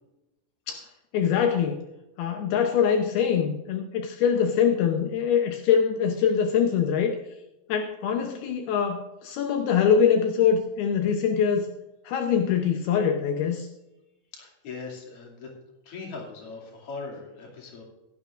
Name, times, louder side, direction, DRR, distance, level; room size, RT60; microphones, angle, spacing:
voice 1, 1.1-1.9 2.2-7.2 7.7-11.7 12.1-13.7, left 7 dB, 85° left, 4 dB, 2.2 m, -23 dB
voice 2, 14.3-15.5 15.8-17.8, left 4 dB, 40° left, -1 dB, 2.6 m, -40 dB
16.5 x 12.0 x 2.5 m, 0.97 s
omnidirectional pair, 5.6 m